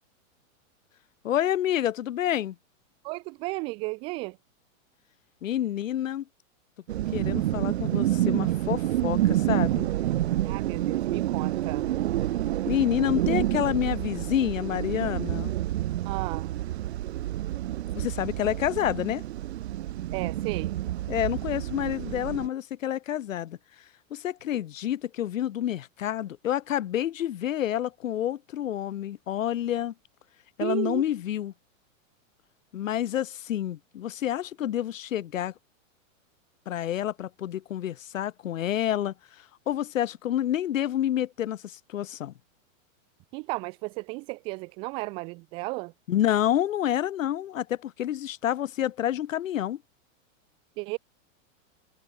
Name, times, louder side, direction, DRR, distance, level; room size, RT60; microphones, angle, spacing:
voice 1, 1.2-2.6 5.4-6.2 7.1-9.9 12.7-15.5 17.9-19.2 21.1-23.6 24.1-29.9 30.6-31.5 32.7-35.5 36.7-42.3 46.1-49.8, left 11 dB, 70° left, 3.8 m, -28 dB
voice 2, 3.0-4.4 10.4-11.8 16.0-16.5 20.1-20.8 30.6-31.0 43.3-45.9 50.8-51.0, right 27 dB, 15° right, 0.6 m, -34 dB
sound 1, 6.9-22.5, right 14 dB, 50° right, 4.3 m, -28 dB
supercardioid pair, 180°, 40 cm